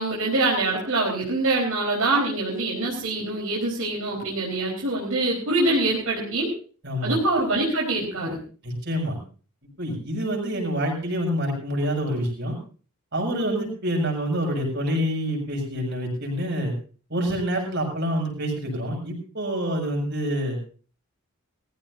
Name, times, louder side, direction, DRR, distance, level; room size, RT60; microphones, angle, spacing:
voice 1, 0.0-6.5 7.0-8.4, right 2 dB, 75° right, -3 dB, 4.4 m, -24 dB
voice 2, 6.8-7.2 8.6-9.2 9.8-12.6 13.1-16.7 17.1-20.6, equal, 50° right, 0 dB, 6.9 m, -27 dB
20.5 x 16.0 x 2.7 m, 0.39 s
head